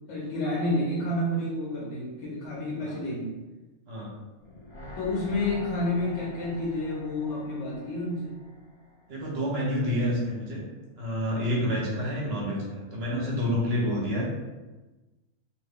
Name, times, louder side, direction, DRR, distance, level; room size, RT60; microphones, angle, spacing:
voice 1, 0.1-3.4 5.0-8.4, left 1 dB, 60° left, -4 dB, 0.9 m, -30 dB
sound 1, 4.4-9.5 9.8-9.9, left 1 dB, 40° left, 0.4 m, -45 dB
voice 2, 9.1-10.6 11.0-14.3, equal, 50° right, -4 dB, 0.9 m, -28 dB
2.5 x 2.5 x 3.4 m, 1.2 s
omnidirectional pair, 1.5 m